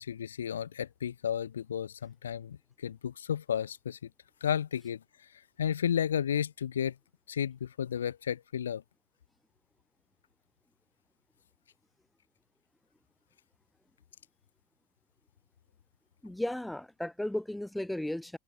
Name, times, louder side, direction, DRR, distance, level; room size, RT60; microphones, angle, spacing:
voice 1, 0.0-4.0 4.4-5.0 5.6-6.9 7.3-8.8, left 9 dB, 80° left, 6.0 m, -32 dB
voice 2, 16.2-18.4, left 1 dB, 5° left, 2.4 m, -35 dB
hypercardioid pair, 85°, 0 cm